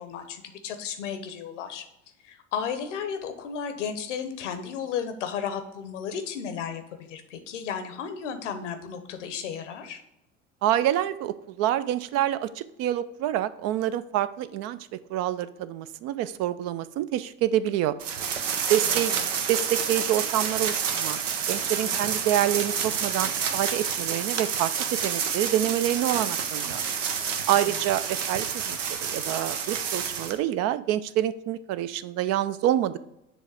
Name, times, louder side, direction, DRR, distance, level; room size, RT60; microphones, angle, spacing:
voice 1, 0.0-1.8 2.2-10.0 18.8-19.2 21.8-22.1 27.6-27.8, left 7 dB, 75° left, 8 dB, 0.9 m, -34 dB
voice 2, 10.6-14.8 15.1-18.0 18.7-19.1 19.5-21.2 21.5-26.8 27.5-33.1, right 12 dB, 45° right, 14 dB, 0.4 m, -27 dB
sound 1, 18.0-30.4, right 7 dB, 80° right, 0.7 m, -29 dB
7.0 x 3.3 x 4.8 m, 0.86 s
hypercardioid pair, 70°, 37 cm